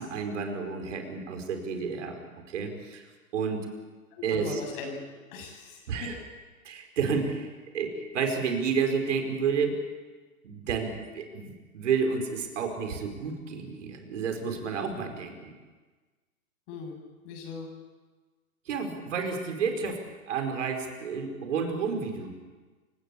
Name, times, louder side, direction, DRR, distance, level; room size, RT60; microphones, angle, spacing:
voice 1, 0.0-3.7 4.2-4.6 5.9-6.1 6.6-9.8 10.4-15.5 18.7-22.3, right 5 dB, 55° right, 5 dB, 4.9 m, -31 dB
voice 2, 4.1-5.0 5.3-6.1 16.7-17.0 17.2-17.7, left 3 dB, 40° left, 3 dB, 7.9 m, -39 dB
28.5 x 17.5 x 8.6 m, 1.3 s
figure-of-eight pair, 120°, 42 cm